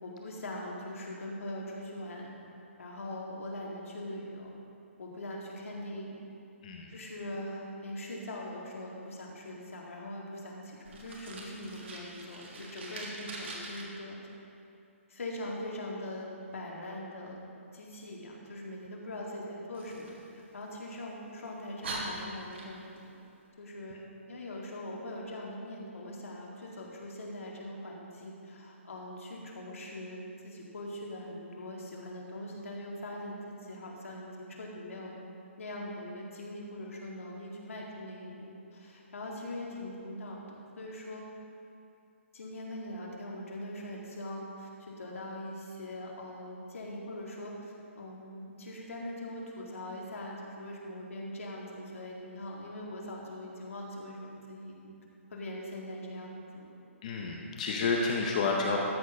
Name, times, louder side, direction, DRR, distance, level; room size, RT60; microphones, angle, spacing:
voice 1, 0.0-2.3 2.8-4.5 5.0-6.2 6.9-14.2 15.1-17.4 17.7-20.2 20.5-23.2 23.6-24.0 24.3-35.2 35.6-41.2 42.3-55.0 55.3-56.7, left 1 dB, 75° left, -2 dB, 2.1 m, -42 dB
Fire, 10.8-13.8 19.7-21.0 21.5-21.6 21.8-23.0, right 2 dB, 55° right, 1.6 m, -43 dB
voice 2, 57.0-58.8, left 4 dB, 30° left, 0 dB, 0.7 m, -30 dB
13.0 x 4.4 x 5.7 m, 2.7 s
hypercardioid pair, 170°, 7 cm